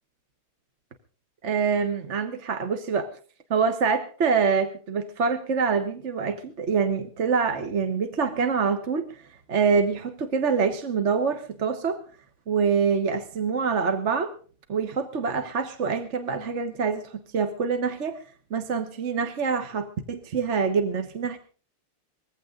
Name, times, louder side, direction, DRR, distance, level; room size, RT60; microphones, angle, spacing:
voice 1, 1.4-3.1 3.5-9.2 9.5-12.0 12.5-14.3 14.7-18.2 18.5-21.4, right 5 dB, 40° right, 8 dB, 1.2 m, -25 dB
20.5 x 15.5 x 3.8 m, 0.40 s
omnidirectional pair, 2.4 m